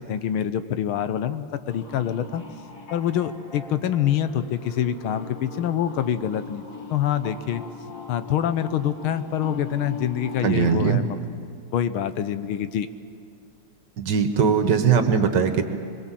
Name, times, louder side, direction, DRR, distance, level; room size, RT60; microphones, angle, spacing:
voice 1, 0.0-2.4 2.9-6.6 6.9-7.6 8.1-11.2 11.7-12.9, left 10 dB, 80° left, 12 dB, 1.6 m, -25 dB
sound 1, 1.7-10.8, left 5 dB, 55° left, 3.5 m, -40 dB
voice 2, 10.4-11.0 14.0-15.6, right 6 dB, 60° right, 7 dB, 1.7 m, -20 dB
24.0 x 21.5 x 7.5 m, 2.3 s
omnidirectional pair, 2.4 m